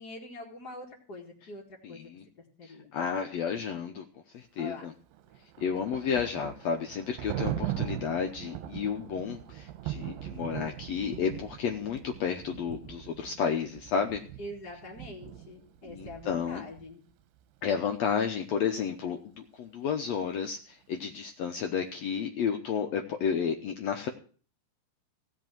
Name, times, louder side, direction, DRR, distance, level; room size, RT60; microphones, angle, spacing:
voice 1, 0.0-1.6 1.9-2.2 2.6-2.9 4.6-4.9 14.4-17.0, left 2 dB, 35° left, -3 dB, 1.8 m, -44 dB
voice 2, 1.8-2.2 2.6-4.0 4.3-4.9 5.6-14.2 15.9-16.6 17.6-24.1, left 7 dB, 85° left, 4 dB, 1.5 m, -32 dB
Thunder, 5.1-16.9, right 12 dB, 80° right, 2.4 m, -40 dB
16.0 x 5.4 x 9.1 m, 0.41 s
omnidirectional pair, 4.3 m